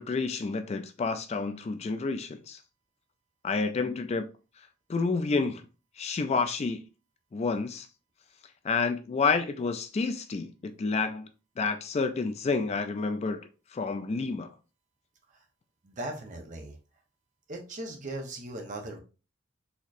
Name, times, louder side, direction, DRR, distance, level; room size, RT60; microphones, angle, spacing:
voice 1, 0.0-2.6 3.4-4.3 4.9-5.6 6.0-6.8 7.3-7.9 8.6-11.3 11.6-13.4 13.7-14.5, left 4 dB, 30° left, 0.3 m, -29 dB
voice 2, 15.8-16.8 17.5-19.0, right 1 dB, 40° right, 0.8 m, -38 dB
4.2 x 3.0 x 2.5 m
head